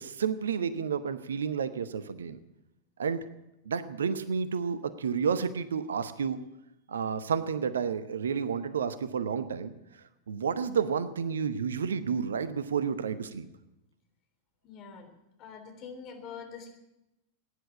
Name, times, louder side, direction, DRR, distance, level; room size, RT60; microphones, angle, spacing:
voice 1, 0.0-2.4 3.0-3.2 3.6-6.4 6.9-9.7 10.3-13.5, right 6 dB, 65° right, 14 dB, 0.9 m, -30 dB
voice 2, 14.6-15.1 15.4-16.7, left 6 dB, 35° left, 4 dB, 3.4 m, -44 dB
16.0 x 10.5 x 8.6 m, 0.89 s
figure-of-eight pair, 90°, 0 cm